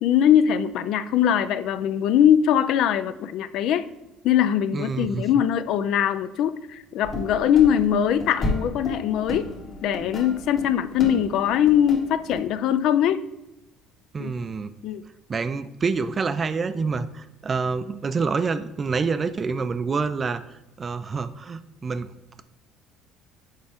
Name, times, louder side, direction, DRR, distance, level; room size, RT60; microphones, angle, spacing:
voice 1, 0.0-3.9 4.2-9.5 9.8-13.3 14.2-14.3 14.8-15.0, left 9 dB, 65° left, 13 dB, 0.3 m, -21 dB
voice 2, 4.7-5.3 14.1-14.7 15.3-22.1, right 4 dB, 30° right, 12 dB, 0.4 m, -27 dB
sound 1, 7.0-12.4, left 1 dB, 40° left, 1.4 m, -33 dB
6.4 x 4.6 x 3.5 m, 0.95 s
cardioid pair, 110°, 0 cm